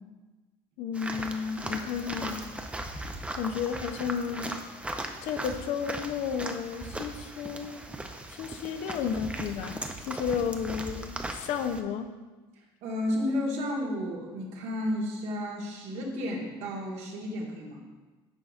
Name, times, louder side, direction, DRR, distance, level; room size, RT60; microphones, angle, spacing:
voice 1, 0.8-2.6 3.3-4.6 5.2-7.9 8.3-9.8 10.1-12.2, left 7 dB, 65° left, 8 dB, 0.5 m, -32 dB
sound 1, 0.9-11.8, right 2 dB, 10° right, 0.5 m, -38 dB
voice 2, 12.8-17.8, left 1 dB, 65° right, 0 dB, 1.3 m, -32 dB
9.4 x 4.9 x 2.4 m, 1.3 s
supercardioid pair, 85°, 12 cm